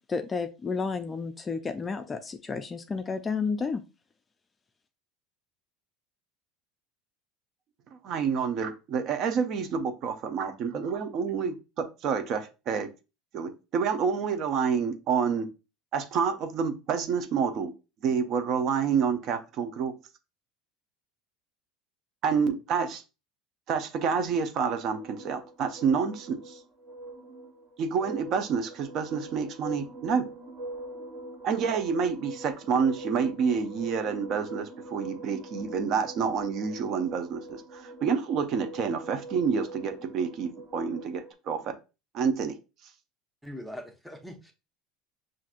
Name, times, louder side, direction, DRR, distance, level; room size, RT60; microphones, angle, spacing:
voice 1, 0.1-3.8, left 4 dB, 20° left, 0.3 m, -31 dB
voice 2, 8.0-12.9 13.3-15.5 15.9-17.7 18.0-19.9 22.2-23.0 23.7-26.6 27.8-30.3 31.4-41.7 42.1-42.6, right 6 dB, 50° right, 0.6 m, -28 dB
sound 1, 24.9-41.3, right 2 dB, 25° right, 1.0 m, -44 dB
voice 3, 43.4-44.5, equal, ahead, 0.7 m, -41 dB
5.7 x 2.5 x 2.4 m
supercardioid pair, 115°, 0 cm